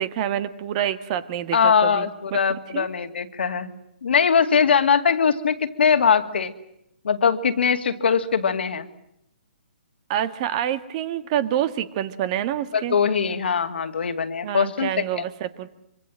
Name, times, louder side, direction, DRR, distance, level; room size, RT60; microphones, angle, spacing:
voice 1, 0.0-2.4 2.7-2.9 10.1-13.0 14.4-15.7, right 11 dB, 35° right, 12 dB, 1.7 m, -27 dB
voice 2, 1.5-3.7 4.0-6.5 7.0-8.9 12.7-15.2, left 6 dB, 70° left, 7 dB, 2.4 m, -21 dB
25.5 x 25.5 x 7.6 m, 0.80 s
hypercardioid pair, 145°, 6 cm